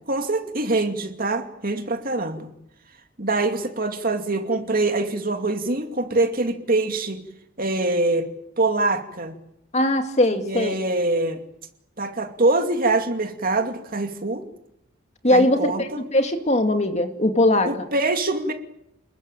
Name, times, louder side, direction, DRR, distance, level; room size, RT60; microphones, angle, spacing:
voice 1, 0.1-2.5 3.2-7.2 7.6-8.3 8.6-9.3 10.4-11.4 12.0-14.4 15.3-16.0 17.6-18.5, right 2 dB, 45° right, 5 dB, 2.5 m, -24 dB
voice 2, 9.7-10.7 15.2-17.7, left 1 dB, 35° left, 6 dB, 2.4 m, -20 dB
29.0 x 21.5 x 9.0 m, 0.77 s
head